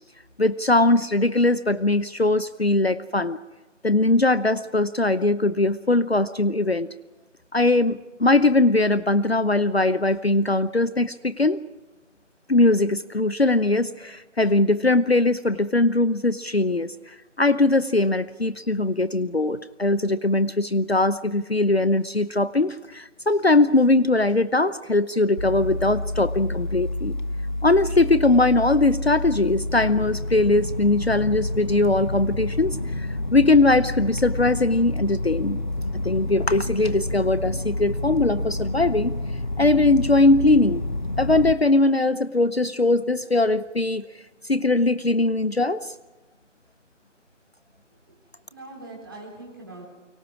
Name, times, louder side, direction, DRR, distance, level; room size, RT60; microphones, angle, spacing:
voice 1, 0.4-3.4 3.8-6.9 7.5-11.6 12.5-16.9 17.4-27.1 27.6-35.6 36.0-39.1 39.6-40.8 41.2-44.1 44.5-45.9, left 2 dB, 55° left, 15 dB, 0.8 m, -20 dB
sound 1, 25.4-41.5, left 1 dB, 40° left, 1.1 m, -29 dB
voice 2, 48.5-49.8, right 2 dB, 20° right, -3 dB, 4.1 m, -42 dB
30.0 x 24.0 x 4.9 m, 1.1 s
figure-of-eight pair, 170°, 38 cm